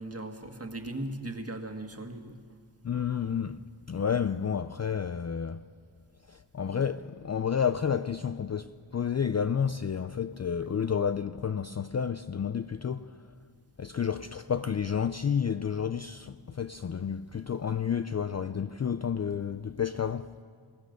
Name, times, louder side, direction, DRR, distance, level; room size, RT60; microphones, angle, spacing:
voice 1, 0.0-2.4, right 1 dB, 30° right, 1.8 m, -38 dB
voice 2, 2.8-3.6 3.9-5.6 6.3-13.1 13.8-20.3, left 7 dB, 35° left, 0.4 m, -30 dB
22.5 x 18.0 x 6.6 m
wide cardioid pair, 100°, 49 cm